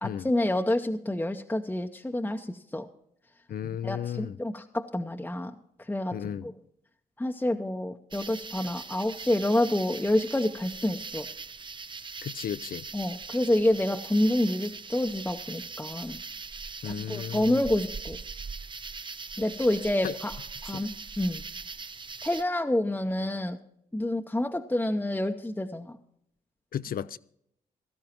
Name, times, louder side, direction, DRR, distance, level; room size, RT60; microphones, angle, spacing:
voice 1, 0.0-2.9 3.8-5.5 5.9-6.5 7.2-11.3 12.9-16.2 16.8-18.2 19.4-20.3 20.6-21.4 22.2-23.6 23.9-26.0, left 1 dB, 10° left, 0.7 m, -28 dB
voice 2, 3.5-4.4 6.1-6.5 12.2-12.9 16.8-17.6 20.0-20.1 20.7-20.8 26.7-27.2, left 9 dB, 55° left, 0.4 m, -34 dB
sound 1, 8.1-22.4, right 4 dB, 25° right, 0.5 m, -41 dB
16.5 x 12.5 x 3.0 m
supercardioid pair, 45°, 18 cm